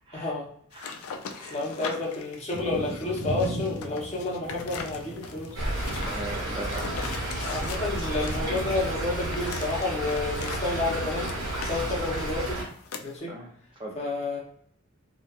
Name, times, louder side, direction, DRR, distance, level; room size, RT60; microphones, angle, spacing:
voice 1, 0.1-0.5 1.5-5.6 7.4-12.6 13.0-13.4 13.9-14.4, left 2 dB, 30° left, -5 dB, 0.7 m, -30 dB
sound 1, 0.7-10.6 10.9-13.2, left 5 dB, 85° left, 0.3 m, -40 dB
voice 2, 0.7-2.0 6.0-7.1 13.3-13.5 13.8-14.0, right 1 dB, 25° right, 0 dB, 0.4 m, -40 dB
sound 2, 2.5-12.1, right 1 dB, 90° right, 0.5 m, -40 dB
Stream / Trickle dribble, 5.6-12.6, right 1 dB, 60° right, 1.1 m, -31 dB
2.7 x 2.3 x 2.3 m, 0.62 s
head